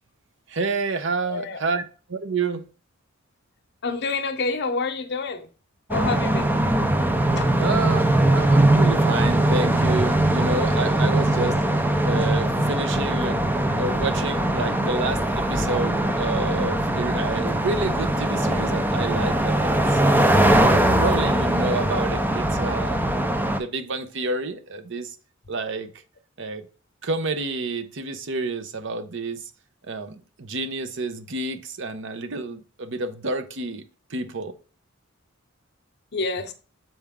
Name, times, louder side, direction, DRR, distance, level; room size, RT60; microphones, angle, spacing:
voice 1, 0.5-1.8 2.1-2.7 7.6-11.6 12.0-13.4 13.8-20.6 21.0-23.0 23.5-25.1 25.5-25.9 26.4-26.7 27.0-29.4 29.8-33.8 34.1-34.5, right 3 dB, 65° right, 0.8 m, -29 dB
voice 2, 1.2-1.6 3.8-5.5 5.9-6.6 7.4-7.6 36.1-36.5, left 4 dB, 55° left, 0.8 m, -28 dB
sound 1, 5.9-23.6, right 1 dB, 10° right, 0.5 m, -21 dB
7.1 x 4.4 x 3.6 m
head